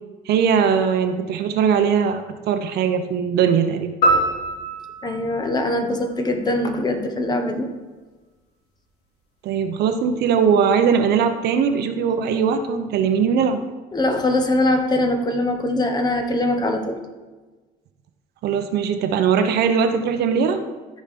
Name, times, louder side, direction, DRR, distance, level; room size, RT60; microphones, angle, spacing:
voice 1, 0.3-3.9 9.4-13.6 18.4-20.6, right 7 dB, 75° right, 7 dB, 0.9 m, -20 dB
sound 1, 4.0-6.5, right 1 dB, 80° left, 3.3 m, -24 dB
voice 2, 5.0-7.7 13.9-17.0, left 1 dB, 25° left, 5 dB, 1.2 m, -22 dB
13.5 x 5.2 x 4.3 m, 1.3 s
cardioid pair, 110°, 17 cm